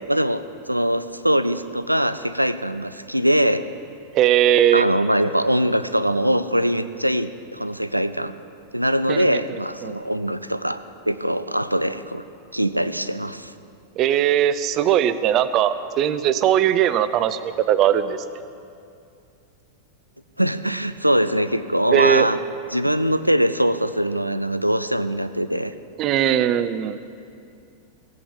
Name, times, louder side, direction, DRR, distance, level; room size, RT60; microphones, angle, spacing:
voice 1, 0.1-3.6 4.7-8.3 8.7-10.8 11.1-12.2 12.5-13.5 20.4-22.4 22.7-25.7, equal, 90° right, 12 dB, 0.5 m, -22 dB
voice 2, 4.1-4.9 9.1-9.3 9.8-9.9 14.0-18.2 21.9-22.3 26.0-27.0, right 10 dB, 35° right, 13 dB, 0.6 m, -19 dB
17.0 x 8.6 x 7.1 m, 2.4 s
figure-of-eight pair, 90°, 0 cm